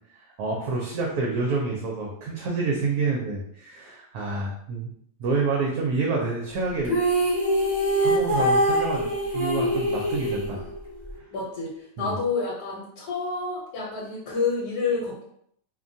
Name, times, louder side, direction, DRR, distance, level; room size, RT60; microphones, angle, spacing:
voice 1, 0.4-4.9 5.2-7.0 8.0-10.6 12.0-12.1, right 3 dB, 70° right, -2 dB, 1.0 m, -28 dB
sound 1, 6.8-11.1, right 1 dB, 20° right, 0.4 m, -23 dB
voice 2, 11.3-11.7 12.0-15.2, left 4 dB, 70° left, -5 dB, 1.2 m, -28 dB
2.7 x 2.2 x 2.6 m, 0.70 s
omnidirectional pair, 1.8 m